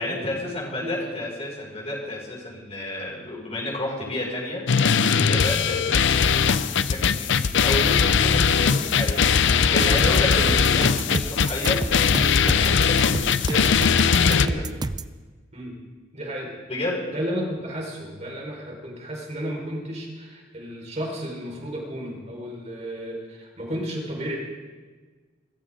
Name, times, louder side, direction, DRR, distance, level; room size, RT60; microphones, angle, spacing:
voice 1, 0.0-4.6 4.9-14.6 16.7-17.0, left 1 dB, 35° left, -4 dB, 6.0 m, -31 dB
voice 2, 0.8-1.2 8.7-8.8 9.7-10.2 15.5-15.7 16.1-16.5 17.1-24.4, equal, 35° right, -1 dB, 4.8 m, -33 dB
sound 1, 4.7-14.5, left 6 dB, 70° left, 0.6 m, -20 dB
sound 2, 9.8-15.1, right 2 dB, 20° right, 0.5 m, -30 dB
24.5 x 14.5 x 3.8 m, 1.4 s
head